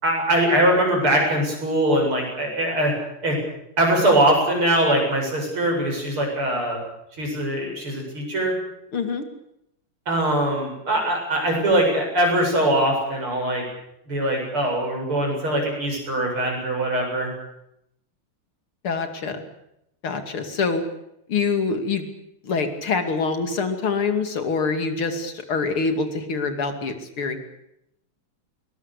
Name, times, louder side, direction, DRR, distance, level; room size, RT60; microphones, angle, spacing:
voice 1, 0.0-2.9 3.2-3.4 3.8-6.8 7.2-8.5 10.1-13.6 14.1-17.3, right 1 dB, 85° right, 0 dB, 8.8 m, -22 dB
voice 2, 8.9-9.3 18.8-19.4 20.0-20.8 21.3-22.1 22.4-27.4, left 4 dB, 85° left, 7 dB, 3.4 m, -25 dB
22.0 x 20.5 x 8.4 m, 0.79 s
omnidirectional pair, 2.3 m